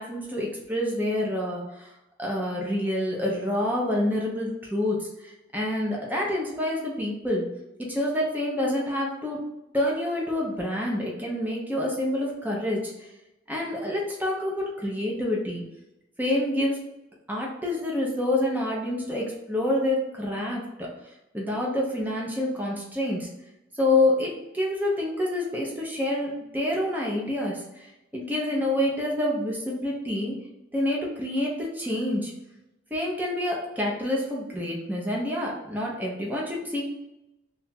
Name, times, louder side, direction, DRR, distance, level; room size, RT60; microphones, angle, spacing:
voice 1, 0.0-1.9 2.2-7.5 7.9-9.4 9.7-12.9 13.5-15.6 16.2-16.8 17.3-20.6 21.3-23.3 23.7-30.3 30.7-32.3 32.9-36.9, left 1 dB, 10° right, -3 dB, 0.9 m, -27 dB
3.5 x 2.7 x 4.3 m, 0.93 s
head